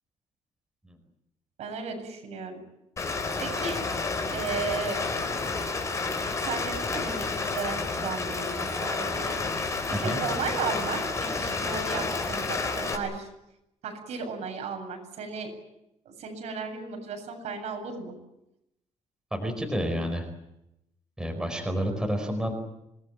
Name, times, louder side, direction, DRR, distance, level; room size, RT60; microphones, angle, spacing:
voice 1, 1.6-2.6 3.4-3.8 4.3-5.0 6.4-9.7 10.0-13.3 13.8-15.5 16.0-18.1, right 4 dB, 75° right, 3 dB, 7.9 m, -35 dB
Rain, 3.0-13.0, left 4 dB, 25° left, 4.4 m, -30 dB
voice 2, 9.9-10.2 19.3-20.3 21.2-22.5, equal, 5° right, 3 dB, 4.7 m, -29 dB
26.5 x 20.0 x 9.1 m, 0.88 s
cardioid pair, 175°, 12 cm